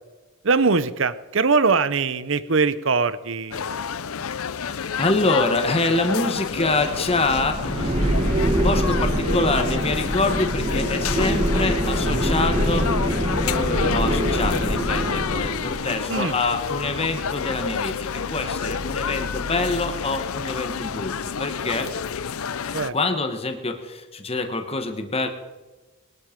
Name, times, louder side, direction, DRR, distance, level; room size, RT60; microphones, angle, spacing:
voice 1, 0.4-3.7 16.1-16.3 22.7-22.9, right 4 dB, 60° right, 16 dB, 0.8 m, -21 dB
sound 1, 3.5-22.9, left 6 dB, 80° left, 0.6 m, -29 dB
voice 2, 4.7-8.4 8.6-12.9 13.4-21.1 21.4-21.9 22.9-25.3, left 3 dB, 25° left, 6 dB, 1.3 m, -25 dB
sound 2, 6.4-15.9, right 1 dB, 25° right, 1.6 m, -24 dB
21.0 x 12.5 x 5.3 m, 1.2 s
head